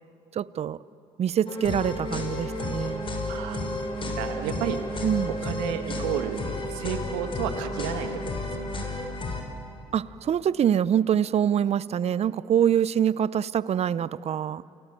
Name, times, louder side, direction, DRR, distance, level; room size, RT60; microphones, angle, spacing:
voice 1, 0.3-0.8 1.2-3.1 5.0-5.3 9.9-14.6, right 9 dB, 50° right, 18 dB, 0.8 m, -25 dB
sound 1, 1.5-9.4, left 2 dB, 40° left, 5.8 m, -32 dB
voice 2, 3.3-3.6 4.2-4.8 5.4-6.4 6.7-8.1 8.7-8.9, right 10 dB, 85° right, 6 dB, 1.9 m, -31 dB
30.0 x 20.5 x 9.2 m, 2.9 s
hypercardioid pair, 60°, 14 cm